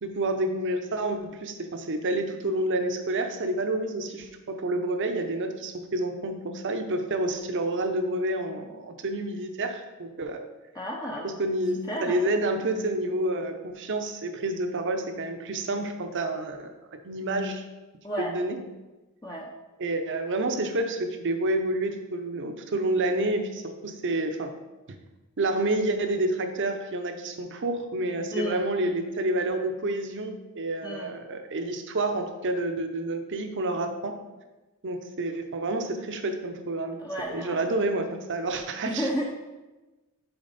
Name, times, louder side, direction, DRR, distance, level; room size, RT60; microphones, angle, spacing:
voice 1, 0.0-10.4 11.4-16.7 17.0-17.6 18.2-18.6 19.8-24.5 25.4-34.1 34.8-37.0 37.3-39.1, right 2 dB, 55° right, 6 dB, 0.7 m, -29 dB
voice 2, 10.7-11.3 11.9-12.2 18.0-18.3 19.2-19.5 28.3-28.6 30.8-31.1 37.0-37.6 38.8-39.2, equal, 15° left, -2 dB, 0.5 m, -32 dB
6.8 x 4.6 x 4.1 m, 1.1 s
head